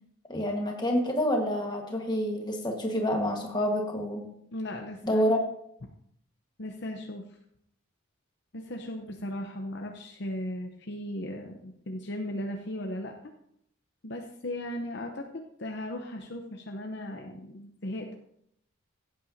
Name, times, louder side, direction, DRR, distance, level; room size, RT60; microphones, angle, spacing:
voice 1, 0.3-4.3 5.0-5.4, equal, 20° left, 2 dB, 1.4 m, -28 dB
voice 2, 4.5-5.2 6.6-7.2 8.5-13.3 14.0-18.1, left 1 dB, 55° left, 2 dB, 0.8 m, -37 dB
15.5 x 8.7 x 2.7 m, 0.73 s
head